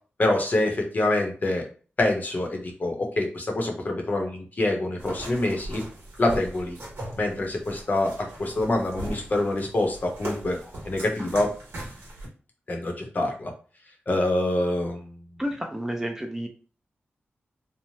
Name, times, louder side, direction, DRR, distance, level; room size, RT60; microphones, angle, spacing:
voice 1, 0.2-1.7 2.0-5.8 6.2-6.8 7.2-10.6 10.8-11.5 12.7-13.5 14.1-15.2, left 1 dB, 45° left, 2 dB, 0.7 m, -26 dB
sound 1, 5.0-12.3, right 1 dB, 70° right, 1.2 m, -39 dB
voice 2, 15.4-16.5, equal, 10° right, 2 dB, 0.4 m, -30 dB
3.1 x 2.0 x 2.7 m, 0.39 s
wide cardioid pair, 110°, 4 cm